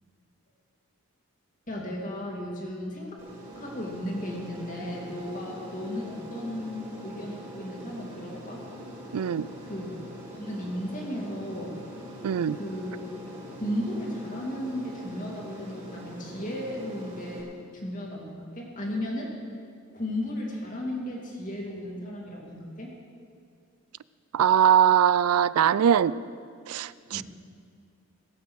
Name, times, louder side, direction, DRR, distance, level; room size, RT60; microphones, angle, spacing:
voice 1, 1.7-3.2 3.5-8.6 9.6-10.0 10.3-11.7 12.5-13.2 13.5-17.5 17.8-19.4 19.9-22.9 27.1-27.2, left 1 dB, 35° left, -2 dB, 2.6 m, -35 dB
Aircraft, 3.2-17.4, equal, 35° right, 3.8 m, -43 dB
voice 2, 9.1-9.5 12.2-12.6 24.3-26.1 26.7-27.2, right 9 dB, 85° right, 18 dB, 0.3 m, -21 dB
18.5 x 8.4 x 6.4 m, 2.2 s
head